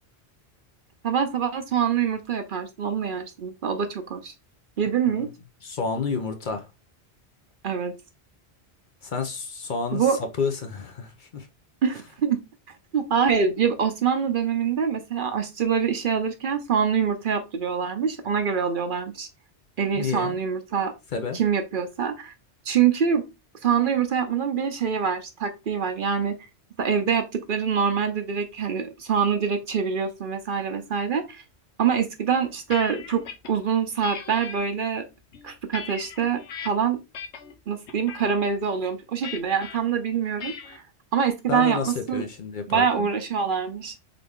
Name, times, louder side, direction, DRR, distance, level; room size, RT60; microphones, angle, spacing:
voice 1, 1.0-4.3 4.8-5.3 7.6-7.9 9.9-10.2 11.8-12.4 12.9-19.3 19.8-20.9 21.3-22.3 22.7-23.2 23.6-26.3 26.8-31.4 31.8-33.2 33.5-35.0 35.4-37.0 37.7-40.8 41.1-42.2 42.7-43.9, right 7 dB, 55° right, 0.8 m, -25 dB
voice 2, 5.6-6.7 9.0-11.5 19.9-20.4 21.1-21.4 41.5-43.1, left 4 dB, 50° left, 0.8 m, -30 dB
sound 1, 32.3-33.5 34.0-34.6 35.2-36.7 37.1-37.5 37.9-38.3 39.2-39.8 40.4-40.8, left 7 dB, 90° left, 1.1 m, -38 dB
3.9 x 3.3 x 3.5 m
omnidirectional pair, 1.1 m